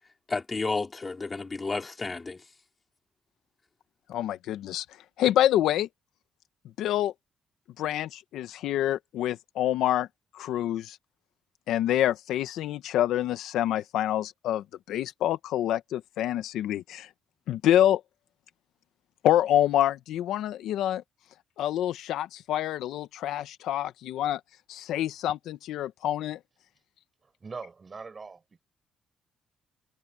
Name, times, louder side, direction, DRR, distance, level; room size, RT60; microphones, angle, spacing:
voice 1, 0.3-2.4, left 3 dB, 25° left, 3.8 m, -31 dB
voice 2, 4.1-4.8 5.2-5.9 6.8-7.1 7.8-10.1 10.3-11.0 11.7-17.1 17.5-18.0 19.2-21.0 21.6-24.4 24.7-26.4, left 12 dB, 85° left, 1.3 m, -27 dB
voice 3, 27.2-28.6, right 4 dB, 35° right, 5.2 m, -42 dB
cardioid pair, 90°, 0 cm